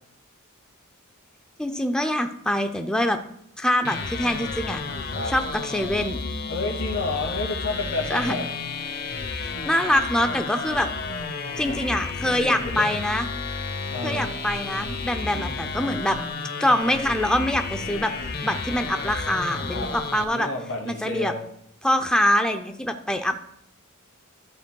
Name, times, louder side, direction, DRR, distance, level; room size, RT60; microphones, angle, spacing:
voice 1, 1.6-3.2 3.6-4.8 5.3-6.2 8.1-8.4 9.3-10.9 11.6-13.3 14.0-16.2 16.6-18.1 18.4-20.5 20.9-21.3 21.8-23.4, left 1 dB, 5° left, 5 dB, 0.5 m, -24 dB
sound 1, 3.8-20.2, left 4 dB, 45° left, 0.7 m, -32 dB
voice 2, 6.5-8.5 10.7-10.9 11.7-12.0 12.2-12.9 13.9-14.3 15.2-15.7 19.7-19.9 20.3-21.4, left 3 dB, 85° left, 1 dB, 2.1 m, -31 dB
13.0 x 7.7 x 2.3 m, 0.71 s
head